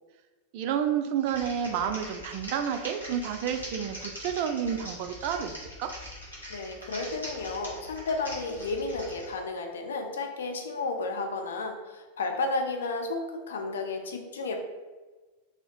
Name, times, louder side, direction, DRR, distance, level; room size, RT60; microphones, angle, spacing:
voice 1, 0.5-5.9, right 8 dB, 45° right, 7 dB, 0.3 m, -30 dB
Typing, 1.2-9.3, equal, 85° left, 0.9 m, -42 dB
voice 2, 6.5-14.6, left 3 dB, 65° left, 4 dB, 0.4 m, -32 dB
2.8 x 2.7 x 3.1 m, 1.3 s
figure-of-eight pair, 90°, 0 cm